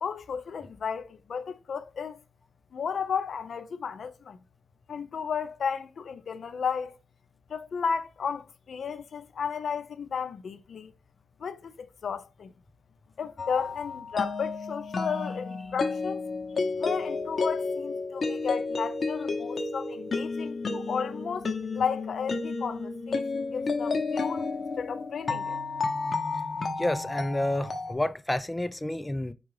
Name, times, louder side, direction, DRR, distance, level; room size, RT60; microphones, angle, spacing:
voice 1, 0.0-2.2 2.7-4.4 4.9-7.0 7.5-10.9 11.4-12.5 13.2-16.2 16.8-25.6, left 6 dB, 70° left, 0.5 m, -33 dB
sound 1, 13.4-27.9, left 3 dB, 50° left, 0.8 m, -31 dB
voice 2, 26.8-29.3, left 1 dB, 15° left, 0.4 m, -29 dB
4.7 x 2.4 x 4.7 m
wide cardioid pair, 95°, 0 cm